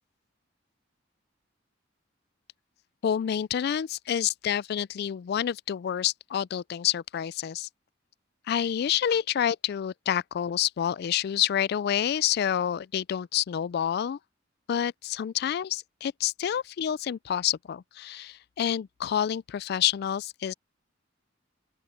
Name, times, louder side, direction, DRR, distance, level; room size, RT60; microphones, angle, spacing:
voice 1, 3.0-7.7 8.5-14.2 14.7-20.5, left 9 dB, 55° left, 0.3 m, -28 dB
open air
head